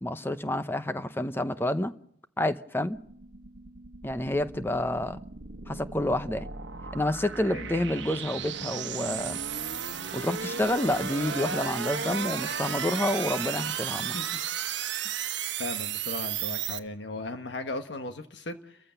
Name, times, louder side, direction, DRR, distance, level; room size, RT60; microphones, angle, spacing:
voice 1, 0.0-1.9 2.4-3.0 4.0-5.2 5.7-6.5 6.9-9.4 10.1-14.2, left 1 dB, 10° left, 0.8 m, -29 dB
sound 1, 2.9-16.8, right 7 dB, 75° right, 1.2 m, -34 dB
voice 2, 14.1-14.4 15.0-15.3 15.6-18.8, left 2 dB, 75° left, 1.4 m, -37 dB
29.5 x 14.5 x 6.9 m
head